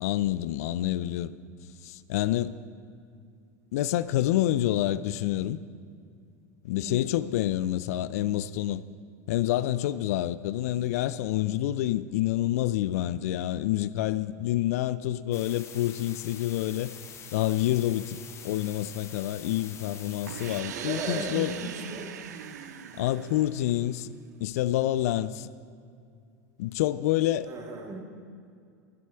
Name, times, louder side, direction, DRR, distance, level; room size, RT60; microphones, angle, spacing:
voice 1, 0.0-1.3 1.8-2.5 3.7-5.6 6.6-8.8 9.3-16.9 17.3-21.5 23.0-24.1 24.4-25.5 26.6-27.5, left 14 dB, 60° left, 0.3 m, -28 dB
sound 1, 15.3-20.6, left 7 dB, 30° left, 0.9 m, -45 dB
sound 2, 20.3-24.0, right 8 dB, 70° right, 0.6 m, -40 dB
voice 2, 20.7-22.1 27.4-28.0, right 3 dB, 35° right, 1.8 m, -36 dB
10.5 x 10.5 x 4.6 m
figure-of-eight pair, 85°, 9 cm